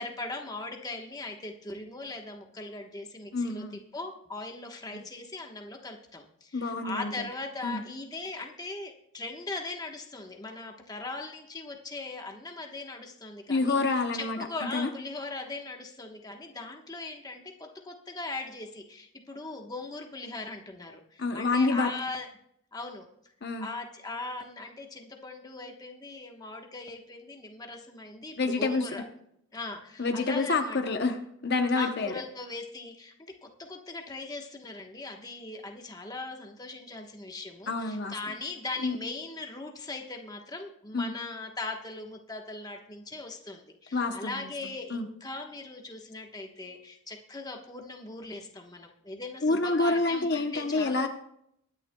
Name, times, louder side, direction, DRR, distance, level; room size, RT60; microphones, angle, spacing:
voice 1, 0.0-3.6 3.9-22.3 22.7-23.1 23.6-29.0 29.5-30.8 31.7-33.1 33.4-51.1, left 3 dB, 20° left, 2 dB, 1.1 m, -39 dB
voice 2, 3.3-3.8 4.9-5.0 6.5-7.1 7.6-7.8 13.5-14.4 14.7-14.9 21.2-21.9 23.4-23.7 28.4-28.8 30.0-31.2 31.4-32.1 37.7-38.1 38.8-39.0 40.9-41.1 43.9-44.4 44.9-45.1 49.4-51.1, left 3 dB, 50° left, 5 dB, 0.8 m, -27 dB
22.5 x 9.9 x 2.3 m, 0.74 s
head